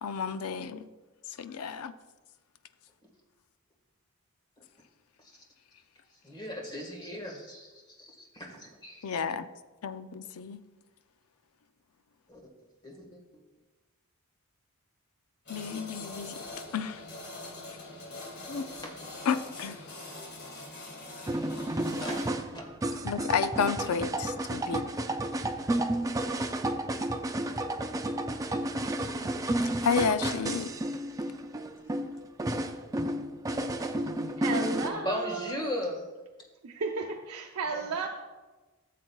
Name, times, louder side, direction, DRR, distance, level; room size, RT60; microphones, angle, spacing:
voice 1, 0.0-0.9 1.4-1.9 9.0-9.5 9.8-10.6 15.5-16.4 16.7-17.0 18.5-18.7 19.3-19.8 23.0-24.8 29.8-30.7, left 6 dB, 85° left, 12 dB, 0.5 m, -31 dB
voice 2, 6.1-9.2 12.3-12.4 12.8-13.4 18.1-18.2 18.8-19.0 21.9-22.2 22.5-22.7 34.9-36.0 37.7-38.1, left 1 dB, 20° left, 0 dB, 1.6 m, -38 dB
sound 1, 15.4-22.3, left 2 dB, 50° left, 2.0 m, -43 dB
sound 2, 21.3-34.9, right 1 dB, 15° right, 0.4 m, -31 dB
voice 3, 34.4-35.6 36.6-38.1, right 4 dB, 80° right, 0 dB, 0.7 m, -34 dB
14.0 x 7.5 x 2.3 m, 1.2 s
head